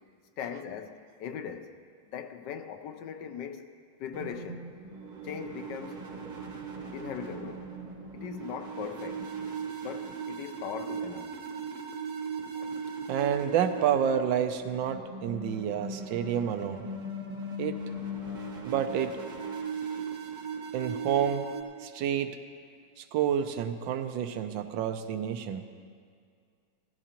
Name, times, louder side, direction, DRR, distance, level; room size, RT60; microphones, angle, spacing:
voice 1, 0.4-1.7 2.1-3.7 4.0-4.7 5.2-6.0 6.9-7.7 8.1-9.3 9.8-11.3 12.5-12.8, left 8 dB, 75° left, 1.3 m, -39 dB
sound 1, 4.1-21.6, right 4 dB, 35° right, 0.9 m, -38 dB
voice 2, 13.1-16.9 17.6-17.8 18.6-19.2 20.7-21.5 21.8-22.4 23.0-25.6, right 8 dB, 80° right, 1.3 m, -29 dB
16.0 x 14.0 x 2.9 m
omnidirectional pair, 2.0 m